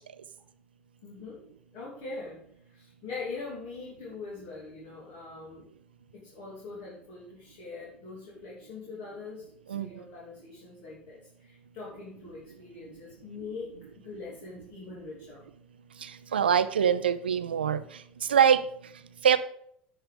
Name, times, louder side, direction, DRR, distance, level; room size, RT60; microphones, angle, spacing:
voice 1, 1.0-1.4 1.7-2.4 2.7-5.7 6.1-13.7 14.0-15.4, left 4 dB, 55° left, -5 dB, 2.8 m, -42 dB
voice 2, 16.3-17.8 18.3-18.6 19.2-19.4, right 8 dB, 75° right, 13 dB, 0.5 m, -23 dB
10.0 x 5.7 x 5.2 m, 0.67 s
figure-of-eight pair, 70°, 5 cm